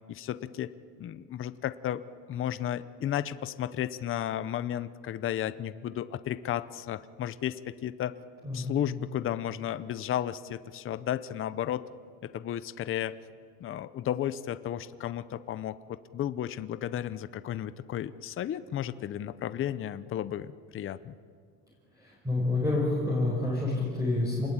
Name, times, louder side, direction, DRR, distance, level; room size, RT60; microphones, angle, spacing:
voice 1, 0.1-8.2 8.5-11.9 12.2-13.2 13.6-21.1, left 11 dB, 35° left, 14 dB, 0.7 m, -33 dB
voice 2, 22.0-24.5, left 2 dB, 10° right, -4 dB, 5.5 m, -28 dB
28.0 x 20.5 x 8.8 m, 2.1 s
cardioid pair, 150°, 39 cm